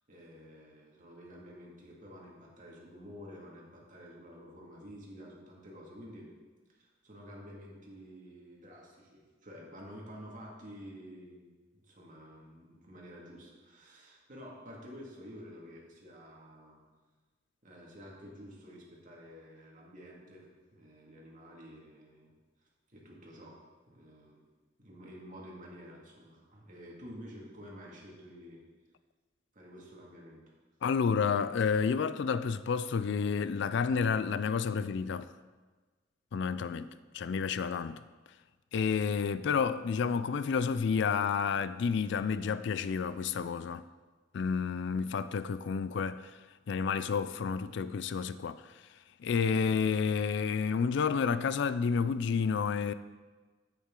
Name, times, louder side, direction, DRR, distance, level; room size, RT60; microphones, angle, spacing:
voice 1, 0.1-6.3 6.7-16.8 17.6-22.3 22.9-23.6 23.9-24.4 24.8-28.6 29.5-30.4, equal, 45° right, 2.1 m, -50 dB
voice 2, 30.8-35.3 36.3-38.0 38.7-43.8 44.3-46.3 46.7-48.6 49.2-52.9, left 6 dB, 65° left, 0.4 m, -30 dB
9.6 x 8.4 x 3.8 m
head